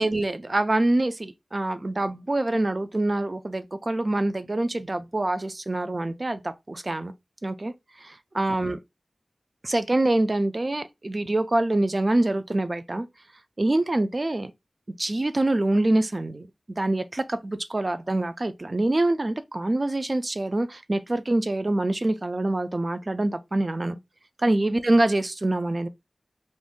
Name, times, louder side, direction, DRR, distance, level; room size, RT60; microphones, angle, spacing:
voice 1, 0.0-7.1 7.4-7.7 8.0-8.8 9.6-13.1 13.6-14.5 15.0-24.0 24.4-25.9, right 2 dB, 40° right, 0.3 m, -25 dB
2.5 x 2.1 x 3.6 m
wide cardioid pair, 65°, 0 cm